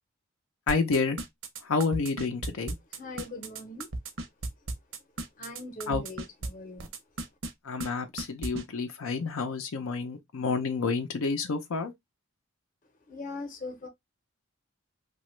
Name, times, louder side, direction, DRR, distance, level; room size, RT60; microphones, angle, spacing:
voice 1, 0.7-1.2 1.6-2.7 5.9-6.0 7.6-11.9, left 4 dB, 85° left, 0.5 m, -29 dB
sound 1, 0.7-6.5 6.8-7.5 7.8-7.9 8.2-8.6, right 2 dB, 70° right, 0.6 m, -35 dB
voice 2, 2.9-3.9 5.4-6.9 13.1-13.9, left 3 dB, 40° left, 0.7 m, -41 dB
2.9 x 2.3 x 3.0 m
head